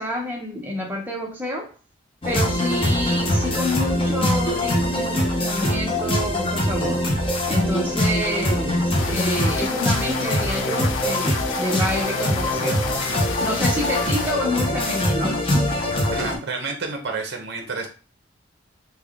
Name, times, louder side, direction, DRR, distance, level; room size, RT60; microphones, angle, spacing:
voice 1, 0.0-1.7 2.2-7.1 7.5-12.9 13.4-15.7 16.3-16.4, equal, 10° right, 0.7 m, -28 dB
sound 1, 2.2-16.4, left 1 dB, 25° left, 0.6 m, -23 dB
sound 2, 9.0-14.3, left 7 dB, 70° left, 0.4 m, -32 dB
voice 2, 16.1-17.9, right 4 dB, 55° right, 0.7 m, -29 dB
3.4 x 2.2 x 3.5 m
head